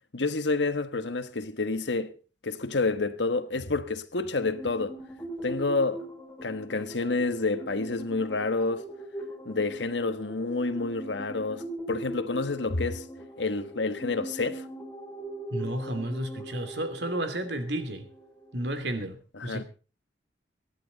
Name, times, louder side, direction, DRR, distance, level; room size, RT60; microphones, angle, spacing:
voice 1, 0.1-2.1 2.4-5.0 5.4-6.1 6.4-8.9 9.4-13.0 13.4-14.7 19.3-19.6, left 3 dB, 80° left, 1.3 m, -29 dB
sound 1, 4.4-18.8, right 1 dB, 10° left, 4.1 m, -41 dB
voice 2, 15.5-18.1 18.5-19.6, right 1 dB, 70° right, 2.8 m, -32 dB
24.0 x 10.5 x 4.0 m
head